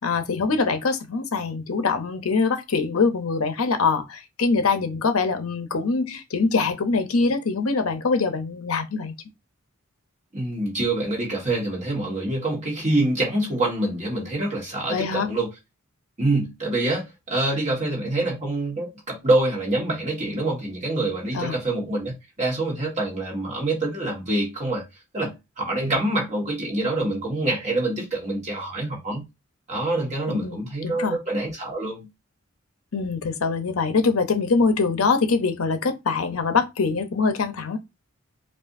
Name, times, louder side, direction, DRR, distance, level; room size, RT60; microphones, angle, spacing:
voice 1, 0.0-9.1 14.9-15.3 21.3-21.6 30.3-31.2 32.9-37.8, left 4 dB, 85° left, 0.7 m, -23 dB
voice 2, 10.3-15.5 16.2-24.8 25.1-29.2 29.7-32.1, right 2 dB, 35° right, 1.6 m, -26 dB
4.7 x 2.5 x 2.6 m
head